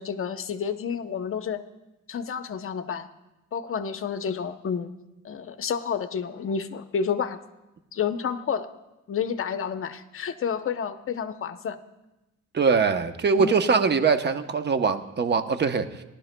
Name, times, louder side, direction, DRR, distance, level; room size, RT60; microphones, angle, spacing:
voice 1, 0.0-1.6 2.1-3.1 3.5-4.9 5.2-7.4 7.9-8.7 9.1-11.8 13.4-13.5, left 7 dB, 45° left, 10 dB, 0.8 m, -30 dB
voice 2, 12.5-16.0, right 5 dB, 35° right, 9 dB, 0.8 m, -22 dB
19.5 x 11.5 x 2.2 m, 0.99 s
cardioid pair, 90°, 30 cm